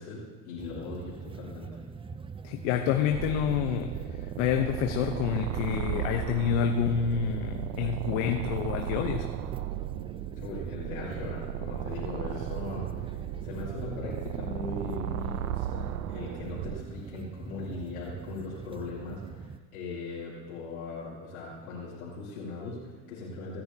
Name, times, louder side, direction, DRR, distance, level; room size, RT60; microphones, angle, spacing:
voice 1, 0.0-1.8 10.4-23.6, left 3 dB, 90° left, -10 dB, 3.6 m, -39 dB
sound 1, 0.6-19.6, right 5 dB, 15° right, 0.4 m, -43 dB
voice 2, 2.4-3.9 4.4-9.3, left 8 dB, 70° left, 5 dB, 1.0 m, -28 dB
sound 2, 3.1-16.8, right 12 dB, 90° right, 0.6 m, -36 dB
24.5 x 10.0 x 2.8 m, 1.4 s
hypercardioid pair, 75°, 42 cm